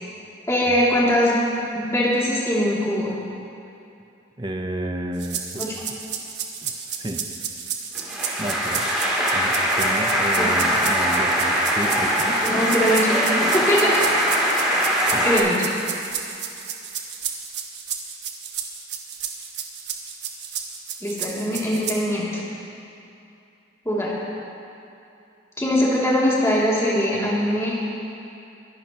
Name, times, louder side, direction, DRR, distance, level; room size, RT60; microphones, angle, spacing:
voice 1, 0.5-1.4 1.7-3.2 5.6-5.7 9.2-9.4 10.4-10.5 12.4-14.0 15.2-15.6 21.0-22.4 23.8-24.1 25.6-27.8, equal, 15° left, -7 dB, 2.7 m, -22 dB
voice 2, 4.4-5.6 6.6-7.3 8.4-8.9 9.3-12.4 15.1-15.3, right 1 dB, 25° right, 5 dB, 0.8 m, -31 dB
sound 1, 5.2-22.0, right 8 dB, 65° right, 1.2 m, -32 dB
sound 2, 7.9-15.4, equal, 5° right, 3.0 m, -22 dB
24.0 x 11.5 x 3.0 m, 2.7 s
head